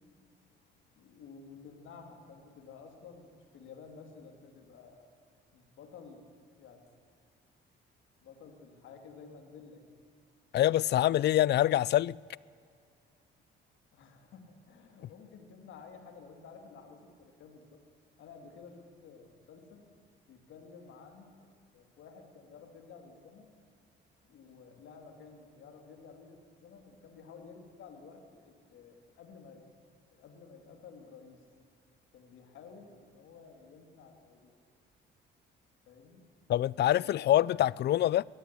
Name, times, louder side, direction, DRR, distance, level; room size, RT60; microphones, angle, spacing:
voice 1, 1.0-3.3 3.5-5.1 5.5-6.2 6.6-6.9 8.2-10.0 13.9-17.8 18.2-19.8 20.3-21.5 21.7-23.5 24.3-29.7 30.1-31.4 32.1-34.5 35.9-36.2 36.9-37.8, left 5 dB, 80° left, 2.8 m, -52 dB
voice 2, 10.5-12.2 36.5-38.2, left 13 dB, 60° left, 0.4 m, -25 dB
20.5 x 14.5 x 9.8 m
cardioid pair, 90°, 20 cm